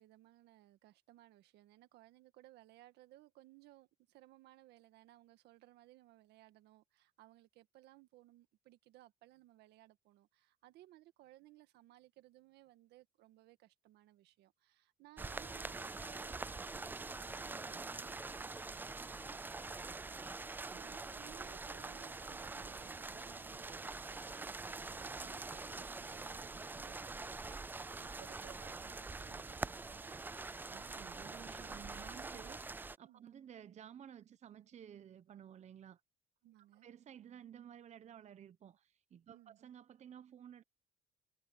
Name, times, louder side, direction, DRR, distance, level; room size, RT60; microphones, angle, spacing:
voice 1, 0.0-30.2 33.1-33.3 36.4-36.9 39.3-39.6, right 16 dB, 80° right, 1.6 m, -62 dB
sound 1, 15.2-33.0, right 3 dB, 10° right, 0.3 m, -45 dB
voice 2, 30.7-36.0 36.8-40.6, right 9 dB, 45° right, 0.9 m, -54 dB
cardioid pair, 110°, 17 cm